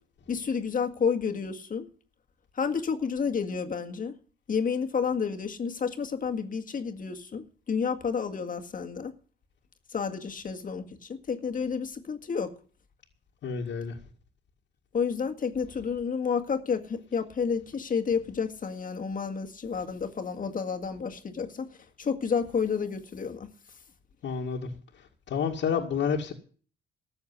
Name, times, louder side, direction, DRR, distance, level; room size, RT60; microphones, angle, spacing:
voice 1, 0.3-1.9 2.6-4.1 4.5-9.1 9.9-12.5 14.9-21.7 22.0-23.5, left 6 dB, 45° left, 1.9 m, -30 dB
voice 2, 13.4-14.0 24.2-24.7 25.0-26.3, left 6 dB, 65° left, 2.1 m, -30 dB
14.0 x 7.1 x 9.6 m
cardioid pair, 90°, 20 cm